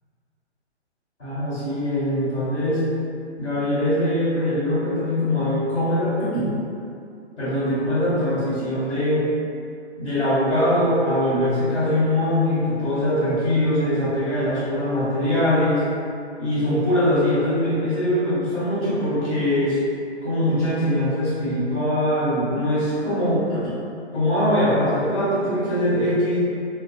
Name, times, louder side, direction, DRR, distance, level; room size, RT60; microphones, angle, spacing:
voice 1, 1.2-2.9 3.4-6.5 7.4-9.3 10.0-15.9 16.4-19.8 20.2-23.7 24.1-26.4, left 1 dB, 5° left, -19 dB, 0.3 m, -22 dB
2.2 x 2.0 x 2.8 m, 2.5 s
figure-of-eight pair, 130°, 34 cm